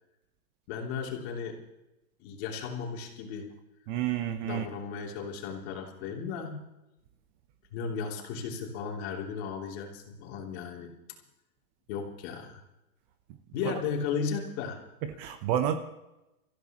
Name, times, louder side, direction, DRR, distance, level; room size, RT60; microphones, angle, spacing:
voice 1, 0.7-1.6 2.2-3.5 4.4-6.6 7.7-11.2 11.9-12.6 13.5-14.8, left 6 dB, 45° left, 3.3 m, -35 dB
voice 2, 3.9-4.7 13.6-13.7 15.0-15.7, right 11 dB, 30° right, 0.9 m, -29 dB
25.5 x 15.0 x 3.1 m
supercardioid pair, 150°, 46 cm